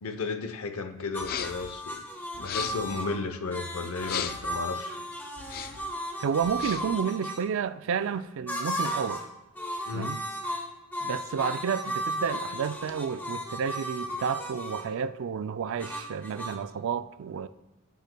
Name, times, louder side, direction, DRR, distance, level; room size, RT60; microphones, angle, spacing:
voice 1, 0.0-2.0 2.4-5.0 9.9-10.1, left 4 dB, 70° left, 0.7 m, -34 dB
sound 1, 1.1-7.4 8.5-9.3 9.6-14.9 15.8-16.6, equal, 10° left, 0.7 m, -35 dB
sound 2, 1.2-1.7 2.3-2.9 4.0-4.6 5.4-5.9 6.4-7.0, left 8 dB, 40° left, 0.3 m, -36 dB
voice 2, 6.2-9.3 9.9-10.2 11.0-17.5, right 7 dB, 60° right, 0.3 m, -31 dB
9.9 x 9.1 x 2.2 m
head